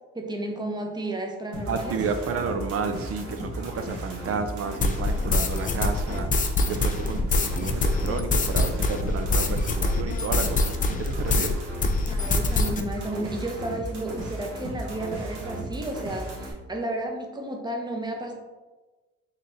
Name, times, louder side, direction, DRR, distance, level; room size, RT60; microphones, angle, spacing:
voice 1, 0.1-1.9 12.1-18.3, right 1 dB, 15° right, 2 dB, 0.7 m, -32 dB
sound 1, 1.5-16.5, right 1 dB, 75° right, 1.2 m, -36 dB
voice 2, 1.7-10.7 11.0-11.6, right 5 dB, 50° right, 8 dB, 0.5 m, -31 dB
sound 2, 4.8-11.5 11.8-12.8, left 2 dB, 25° left, 0.4 m, -24 dB
3.9 x 3.2 x 2.6 m, 1.2 s
cardioid pair, 90°, 30 cm